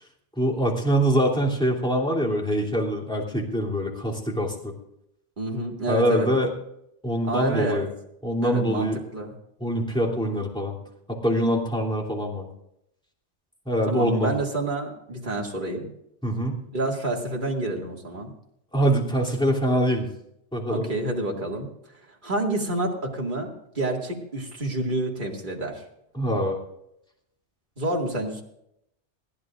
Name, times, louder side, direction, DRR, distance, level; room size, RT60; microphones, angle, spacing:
voice 1, 0.4-4.7 5.9-6.5 7.0-7.9 8.2-9.0 9.6-10.8 11.1-12.5 13.6-14.3 16.2-16.6 18.7-20.1 20.5-20.9 26.1-26.6, equal, 5° left, -3 dB, 3.0 m, -24 dB
voice 2, 5.4-6.3 7.2-7.9 8.4-9.3 13.9-15.9 16.7-18.3 20.7-21.7 22.2-25.8 27.8-28.4, right 2 dB, 40° right, -1 dB, 2.5 m, -28 dB
21.5 x 15.0 x 2.6 m, 0.77 s
omnidirectional pair, 1.2 m